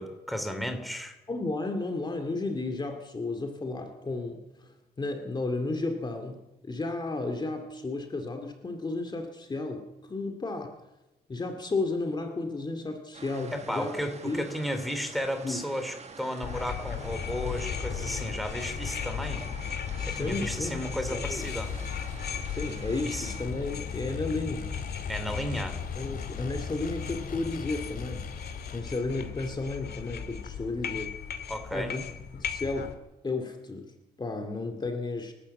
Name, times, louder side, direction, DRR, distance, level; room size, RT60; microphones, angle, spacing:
voice 1, 0.0-1.1 13.5-19.5 20.1-21.7 23.0-23.3 25.1-25.8 31.5-31.9, equal, ahead, 6 dB, 2.9 m, -34 dB
voice 2, 1.3-10.8 11.3-14.0 14.2-14.5 15.4-15.6 20.0-21.4 22.5-24.7 25.9-28.3 28.7-31.2 31.7-32.0 32.3-33.0 33.2-35.3, left 3 dB, 25° left, 5 dB, 2.3 m, -33 dB
sound 1, 13.1-23.5, right 5 dB, 40° right, 1.7 m, -47 dB
sound 2, 16.4-32.9, left 7 dB, 80° left, 2.3 m, -36 dB
sound 3, 21.2-28.8, left 6 dB, 60° left, 2.6 m, -50 dB
29.5 x 12.0 x 8.4 m, 0.99 s
wide cardioid pair, 135°, 17 cm